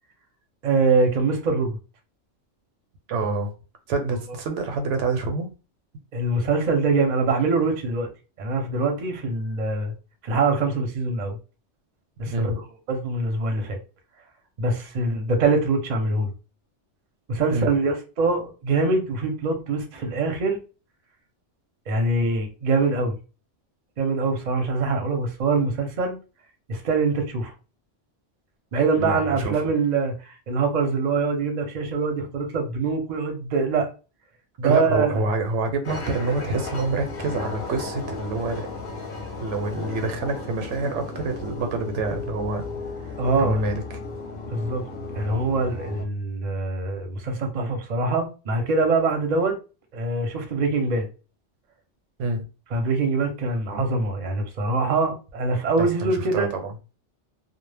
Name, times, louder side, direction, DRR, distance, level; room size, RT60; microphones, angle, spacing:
voice 1, 0.6-1.8 6.1-8.1 8.4-9.9 10.2-11.4 12.2-12.5 12.9-13.8 14.6-16.3 17.3-20.6 21.9-23.2 24.0-26.2 26.7-27.5 28.7-33.9 34.6-35.3 43.2-43.6 44.5-44.8 45.1-49.5 49.9-51.1 52.7-56.5, right 3 dB, 45° right, 0.6 m, -24 dB
voice 2, 3.1-3.5 3.9-5.5 12.3-12.6 17.5-17.7 28.9-29.7 34.6-38.7 39.4-42.7 43.0-43.8 52.2-52.4 55.8-56.7, right 3 dB, 80° right, 0.9 m, -27 dB
sound 1, 35.8-46.0, left 3 dB, 45° left, 0.7 m, -34 dB
2.1 x 2.0 x 3.2 m
omnidirectional pair, 1.2 m